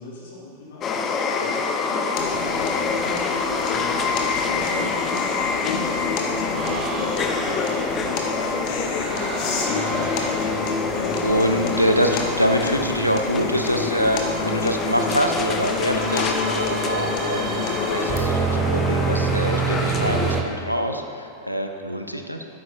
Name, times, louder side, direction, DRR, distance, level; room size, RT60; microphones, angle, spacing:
voice 1, 0.0-3.1 3.7-9.1, left 2 dB, 60° left, -6 dB, 1.9 m, -40 dB
sound 1, 0.8-20.4, left 4 dB, 30° left, 0.7 m, -27 dB
sound 2, 2.2-18.2, left 4 dB, 45° left, 1.1 m, -29 dB
sound 3, 6.5-20.4, right 5 dB, 30° right, 0.9 m, -30 dB
voice 2, 11.2-17.4 17.8-22.4, equal, 90° left, 5 dB, 0.6 m, -24 dB
12.0 x 9.4 x 2.6 m, 2.6 s
figure-of-eight pair, 90°, 0 cm